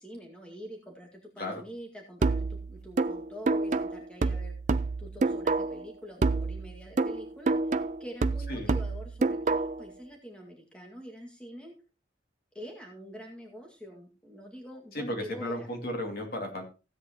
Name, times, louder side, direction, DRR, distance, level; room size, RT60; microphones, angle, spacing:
voice 1, 0.0-11.7 12.5-15.7, equal, 5° left, 0 dB, 2.0 m, -45 dB
sound 1, 2.2-5.9 6.2-9.9, right 3 dB, 40° right, 0.4 m, -28 dB
voice 2, 14.9-16.6, left 1 dB, 50° left, 2 dB, 2.5 m, -34 dB
16.0 x 8.2 x 3.0 m, 0.31 s
head